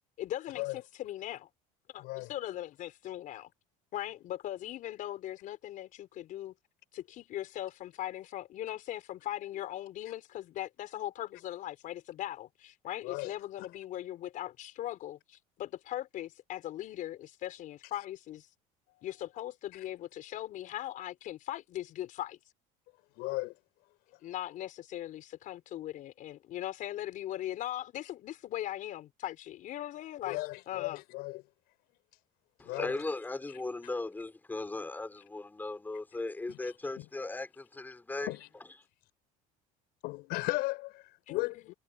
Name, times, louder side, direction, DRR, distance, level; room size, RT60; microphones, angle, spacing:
voice 1, 0.2-1.5 1.9-3.5 3.9-6.5 6.9-18.5 19.0-22.4 24.2-30.4 30.7-31.0 41.3-41.7, left 13 dB, 55° left, 5.1 m, -39 dB
voice 2, 2.0-2.3 13.0-13.3 18.9-19.1 23.2-23.5 30.2-31.4 32.6-33.0 36.5-36.6 37.0-37.1 38.3-38.4 40.0-40.9 41.3-41.7, left 22 dB, 75° left, 5.7 m, -35 dB
voice 3, 32.6-38.3, left 2 dB, 10° left, 5.5 m, -37 dB
cardioid pair, 130°, 16 cm